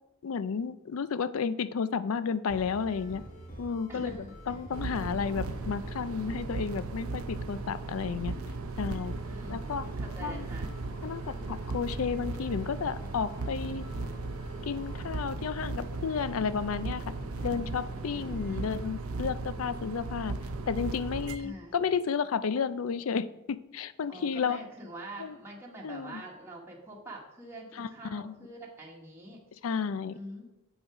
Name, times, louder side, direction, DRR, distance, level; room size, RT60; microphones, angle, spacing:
voice 1, 0.2-3.2 3.6-4.1 4.5-8.3 8.8-9.2 9.5-9.9 10.2-10.5 11.0-13.8 14.6-17.0 17.4-20.3 20.7-24.6 25.2-25.4 25.8-26.2 27.8-28.3 29.6-30.2, left 6 dB, 75° left, 15 dB, 0.4 m, -32 dB
sound 1, 2.5-18.8, equal, 40° left, 1.5 m, -47 dB
voice 2, 3.9-4.5 9.2-9.6 10.0-10.7 18.1-19.0 21.4-21.7 24.1-29.4 30.1-30.5, right 1 dB, 10° right, -3 dB, 1.4 m, -45 dB
sound 2, 4.7-21.4, right 3 dB, 80° right, 0.6 m, -37 dB
8.1 x 6.2 x 4.9 m, 0.93 s
head